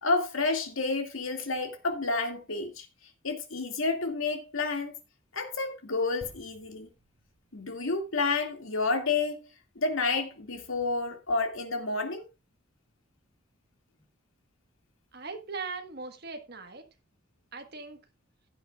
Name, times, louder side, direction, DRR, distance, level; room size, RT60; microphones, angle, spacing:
voice 1, 0.0-2.9 3.2-5.0 5.3-6.9 7.5-9.5 9.8-12.2, left 3 dB, 75° left, 2.3 m, -30 dB
sound 1, 6.2-9.8 10.4-10.5, equal, 20° right, 4.6 m, -56 dB
voice 2, 15.1-16.8 17.5-18.0, right 4 dB, 50° right, 1.5 m, -39 dB
16.0 x 9.2 x 2.4 m
head